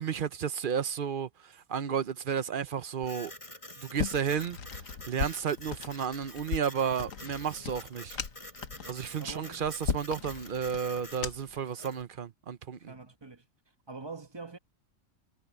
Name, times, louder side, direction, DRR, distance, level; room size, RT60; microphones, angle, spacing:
voice 1, 0.0-3.3 3.8-4.6 5.1-8.2 8.9-12.9, right 7 dB, 50° right, 0.8 m, -32 dB
Printer, 3.0-12.0, left 1 dB, 25° left, 5.0 m, -48 dB
sound 1, 3.9-11.6, left 6 dB, 80° left, 1.5 m, -38 dB
voice 2, 9.2-9.6 12.8-13.5 13.9-14.6, right 4 dB, 20° right, 1.4 m, -44 dB
omnidirectional pair, 1.4 m